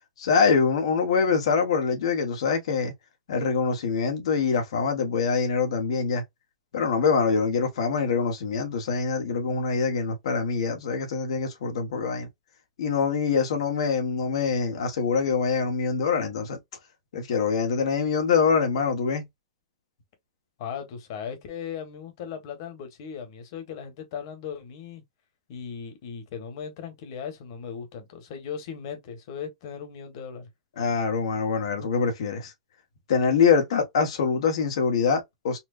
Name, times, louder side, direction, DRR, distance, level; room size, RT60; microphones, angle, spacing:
voice 1, 0.2-2.9 3.3-6.2 6.7-12.3 12.8-16.6 17.1-19.2 30.8-32.5 33.1-35.6, left 5 dB, 75° left, 1.2 m, -24 dB
voice 2, 20.6-25.0 25.5-30.5, left 7 dB, 50° left, 1.4 m, -37 dB
4.3 x 2.3 x 2.5 m
supercardioid pair, 150°, 3 cm